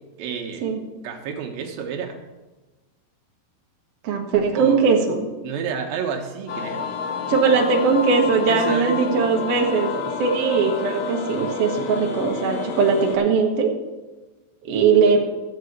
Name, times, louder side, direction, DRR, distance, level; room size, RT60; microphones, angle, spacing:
voice 1, 0.2-0.7 1.0-2.2 4.5-4.9 5.4-6.9 8.5-9.1, right 6 dB, 90° right, 2 dB, 3.0 m, -29 dB
voice 2, 4.0-5.2 7.3-9.9 10.2-13.7 14.6-15.2, right 5 dB, 55° right, 1 dB, 2.0 m, -20 dB
sound 1, 6.5-13.2, left 5 dB, 85° left, 3.0 m, -29 dB
12.5 x 4.8 x 8.0 m, 1.2 s
omnidirectional pair, 4.0 m